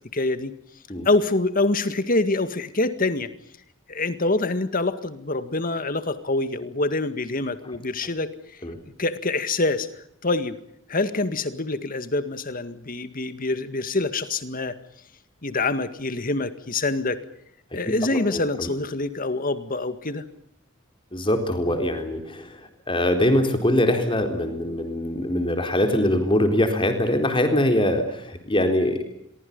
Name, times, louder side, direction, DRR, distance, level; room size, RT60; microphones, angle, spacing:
voice 1, 0.1-0.5 1.1-3.3 3.9-8.3 9.0-9.9 10.2-10.6 10.9-14.7 15.4-17.2 17.7-20.2, left 2 dB, 45° left, 11 dB, 1.9 m, -25 dB
voice 2, 17.9-18.7 21.1-29.0, left 1 dB, 25° left, 6 dB, 4.2 m, -23 dB
30.0 x 23.5 x 5.5 m, 0.73 s
head